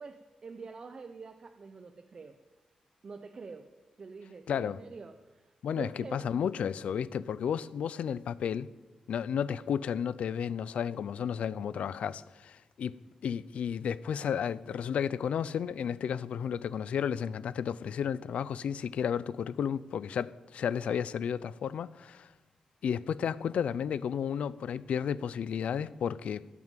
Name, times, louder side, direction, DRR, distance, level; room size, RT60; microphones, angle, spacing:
voice 1, 0.0-2.4 3.0-3.7 4.0-6.3, right 4 dB, 35° right, 0.8 m, -46 dB
voice 2, 4.5-4.8 5.6-8.7 9.1-22.3 22.8-26.5, left 8 dB, 75° left, 0.5 m, -32 dB
17.0 x 9.7 x 7.5 m
wide cardioid pair, 170°, 2 cm